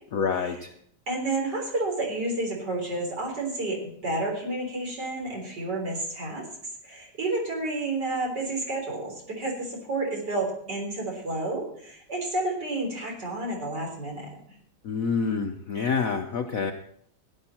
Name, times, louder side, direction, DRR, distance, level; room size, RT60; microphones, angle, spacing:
voice 1, 0.1-0.7 14.8-16.7, left 5 dB, 60° left, 5 dB, 0.9 m, -27 dB
voice 2, 1.1-6.4 6.8-14.4, right 2 dB, 55° right, -1 dB, 4.3 m, -30 dB
16.0 x 10.5 x 4.3 m, 0.65 s
omnidirectional pair, 2.2 m